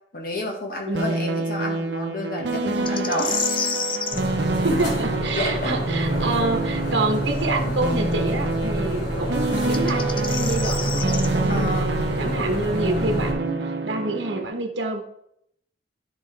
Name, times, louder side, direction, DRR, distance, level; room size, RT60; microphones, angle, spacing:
voice 1, 0.1-3.7 5.4-5.8 11.5-11.9, left 1 dB, 55° left, 0 dB, 1.6 m, -30 dB
sound 1, 0.9-14.5, right 3 dB, 70° right, 1.0 m, -28 dB
voice 2, 0.9-1.2 4.6-11.9 12.2-15.0, right 2 dB, 85° right, 3 dB, 1.3 m, -27 dB
sound 2, 2.9-4.2 7.4-7.5 9.6-11.3, left 6 dB, 30° left, 0.6 m, -28 dB
sound 3, 4.1-13.3, right 1 dB, 70° left, 2.4 m, -27 dB
13.0 x 4.3 x 3.4 m, 0.73 s
head